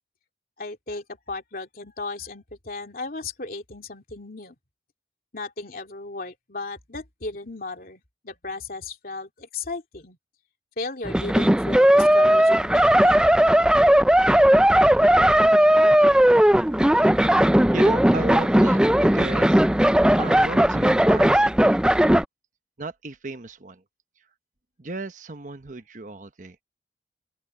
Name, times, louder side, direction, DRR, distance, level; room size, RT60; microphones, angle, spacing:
voice 1, 0.6-4.5 5.3-10.2 10.8-13.3, left 3 dB, 55° left, 2.9 m, -35 dB
sound 1, 11.0-22.2, right 1 dB, 5° right, 0.4 m, -17 dB
voice 2, 17.4-22.0 22.8-23.8 24.8-26.6, right 2 dB, 45° right, 1.1 m, -35 dB
open air
head